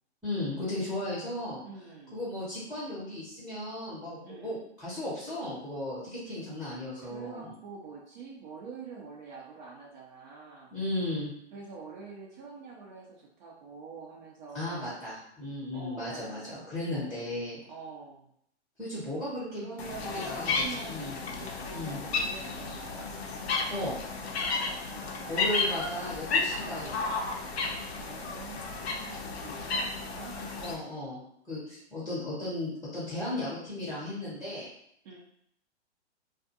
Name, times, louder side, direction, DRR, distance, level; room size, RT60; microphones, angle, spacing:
voice 1, 0.2-1.6 2.1-7.5 10.7-11.3 14.5-17.6 18.8-19.7 20.2-21.1 21.7-22.0 23.7-24.0 25.3-27.2 30.6-31.2 31.5-34.7, left 1 dB, ahead, -8 dB, 0.8 m, -35 dB
voice 2, 1.6-2.2 4.2-4.6 7.0-10.7 11.5-15.0 15.7-17.1 17.7-18.3 19.5-23.1 24.5-25.9 26.6-26.9 27.9-30.6 35.0-35.2, right 4 dB, 45° right, -3 dB, 0.6 m, -46 dB
sound 1, 19.8-30.7, left 4 dB, 65° left, 0.6 m, -33 dB
2.4 x 2.3 x 2.7 m, 0.70 s
hypercardioid pair, 125°, 34 cm